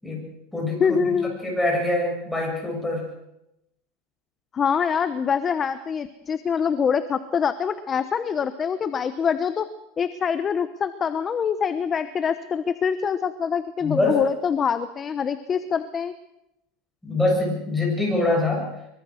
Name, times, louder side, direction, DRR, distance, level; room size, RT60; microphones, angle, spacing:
voice 1, 0.0-3.1 13.8-14.2 17.0-18.7, left 2 dB, 5° left, -1 dB, 7.5 m, -24 dB
voice 2, 0.8-1.4 4.5-9.7 10.0-16.1, left 7 dB, 25° left, 12 dB, 1.0 m, -25 dB
24.0 x 23.5 x 6.5 m, 0.87 s
supercardioid pair, 150°, 0 cm